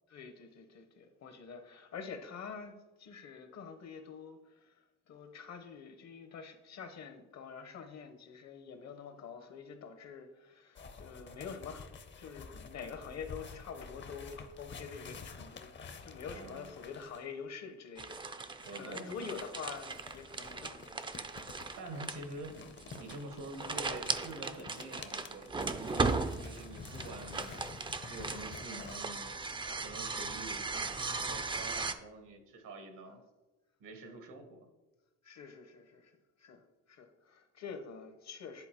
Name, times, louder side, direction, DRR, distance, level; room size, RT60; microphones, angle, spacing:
voice 1, 0.1-11.9 12.1-21.2 27.2-27.3 28.0-28.4 29.6-29.8 31.4-31.5 33.1-33.2 34.0-34.2 35.2-36.1 36.4-38.7, left 6 dB, 60° left, 7 dB, 0.9 m, -47 dB
sound 1, 10.8-17.3 18.6-29.0, left 5 dB, 40° left, 0.6 m, -50 dB
voice 2, 16.3-16.8 18.6-19.4 21.8-22.5 22.9-27.6 28.1-33.2 33.8-34.7, right 2 dB, 80° right, 5 dB, 1.2 m, -47 dB
sound 2, 18.0-31.9, right 3 dB, 15° right, 0.4 m, -37 dB
10.0 x 3.9 x 2.9 m, 1.1 s
cardioid pair, 90°, 30 cm